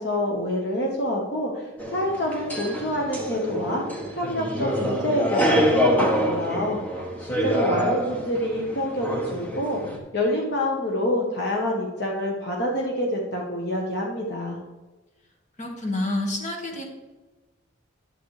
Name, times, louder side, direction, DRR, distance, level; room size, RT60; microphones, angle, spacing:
voice 1, 0.0-9.8 10.1-14.6, left 1 dB, 55° left, -1 dB, 1.1 m, -27 dB
sound 1, 1.8-10.0, equal, 5° left, 1.0 m, -26 dB
voice 2, 15.6-16.8, left 1 dB, 35° left, 1 dB, 1.6 m, -28 dB
10.5 x 7.9 x 3.2 m, 1.2 s
head